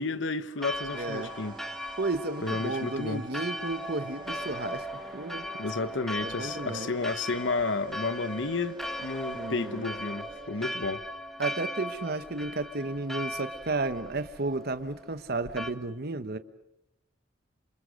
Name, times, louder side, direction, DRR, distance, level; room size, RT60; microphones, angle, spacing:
voice 1, 0.0-1.5 2.4-3.2 5.6-11.0, left 3 dB, 70° left, 1.2 m, -32 dB
sound 1, 0.5-11.0, right 3 dB, 25° right, 1.7 m, -46 dB
Church bell, 0.6-15.7, left 1 dB, ahead, 1.4 m, -39 dB
voice 2, 0.9-1.3 2.0-4.9 5.1-5.4 6.2-6.9 9.3-9.9 11.4-16.4, right 2 dB, 55° right, 1.3 m, -33 dB
28.0 x 27.0 x 6.5 m
head